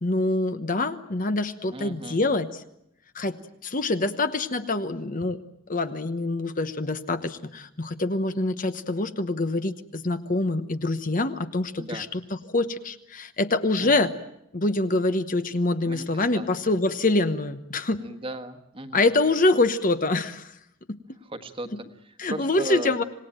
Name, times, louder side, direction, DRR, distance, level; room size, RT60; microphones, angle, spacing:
voice 1, 0.0-2.5 3.1-5.4 5.7-12.2 12.5-14.1 14.5-18.0 18.9-20.5 22.2-23.0, left 2 dB, 40° left, 10 dB, 1.0 m, -25 dB
voice 2, 1.7-2.2 11.8-12.1 13.8-14.1 15.9-16.8 18.0-19.1 21.2-23.0, right 1 dB, 25° right, 9 dB, 1.5 m, -37 dB
26.5 x 19.0 x 9.0 m, 0.79 s
head